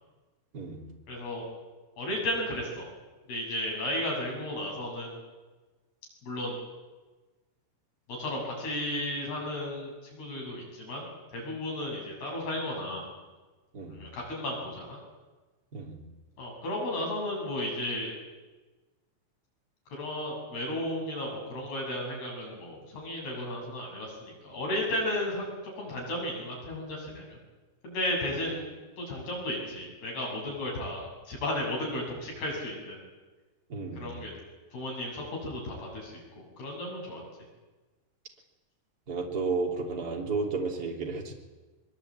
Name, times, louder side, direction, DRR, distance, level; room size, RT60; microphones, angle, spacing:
voice 1, 1.1-1.5 2.0-2.9 3.3-5.2 6.2-6.6 8.2-13.1 13.9-15.0 16.4-18.2 19.9-25.5 25.8-27.4 27.8-28.7 29.0-33.0 33.9-34.3 34.7-37.2, left 1 dB, 80° left, -1 dB, 9.8 m, -34 dB
voice 2, 33.7-34.1 39.1-41.3, right 4 dB, 25° right, 0 dB, 3.2 m, -32 dB
23.0 x 23.0 x 8.8 m, 1.2 s
omnidirectional pair, 4.5 m